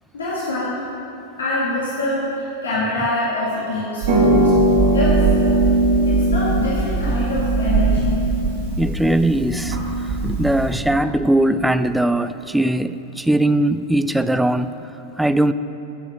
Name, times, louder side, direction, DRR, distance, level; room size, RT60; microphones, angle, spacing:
voice 1, 0.1-0.7 1.4-4.5 4.9-5.3 6.0-8.2, left 1 dB, 65° left, -7 dB, 1.8 m, -25 dB
Harp, 4.0-10.7, right 2 dB, 50° right, 1.7 m, -19 dB
voice 2, 8.8-14.8 15.2-15.5, right 1 dB, 5° right, 12 dB, 0.3 m, -20 dB
11.5 x 7.3 x 5.4 m, 2.9 s
figure-of-eight pair, 90°, 0 cm